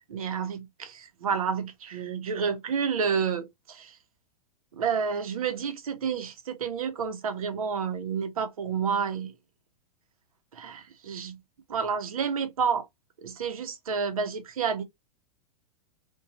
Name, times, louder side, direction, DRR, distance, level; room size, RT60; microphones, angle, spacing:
voice 1, 0.0-4.0 4.7-9.3 10.5-11.4 11.7-12.9 13.2-14.8, right 6 dB, 70° right, 0.7 m, -30 dB
2.6 x 2.2 x 2.7 m
figure-of-eight pair, 105°, 19 cm